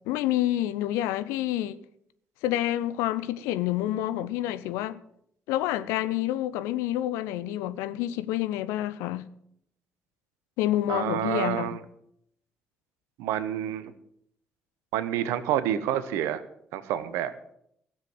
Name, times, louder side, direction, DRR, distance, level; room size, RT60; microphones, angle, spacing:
voice 1, 0.0-1.8 2.4-5.0 5.5-9.3 10.6-11.8, left 13 dB, 70° left, 0.6 m, -28 dB
voice 2, 10.9-11.8 13.2-13.9 14.9-16.4 16.7-17.3, right 11 dB, 70° right, 0.9 m, -28 dB
16.5 x 7.4 x 7.8 m
figure-of-eight pair, 45°, 5 cm